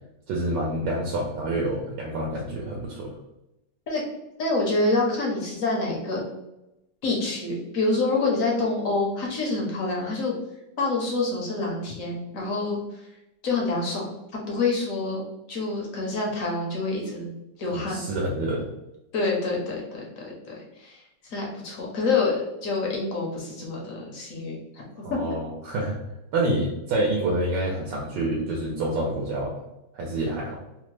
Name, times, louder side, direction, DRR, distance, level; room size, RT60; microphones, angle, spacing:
voice 1, 0.3-3.1 17.7-18.7 25.0-26.0 26.3-29.6 29.9-30.6, right 1 dB, 75° right, -2 dB, 1.2 m, -27 dB
voice 2, 4.4-6.2 7.0-10.3 10.8-13.0 13.4-15.2 15.5-17.3 17.6-18.1 19.1-24.8 25.1-25.2, left 3 dB, 60° left, -2 dB, 0.9 m, -27 dB
3.4 x 2.0 x 3.1 m, 0.93 s
omnidirectional pair, 2.0 m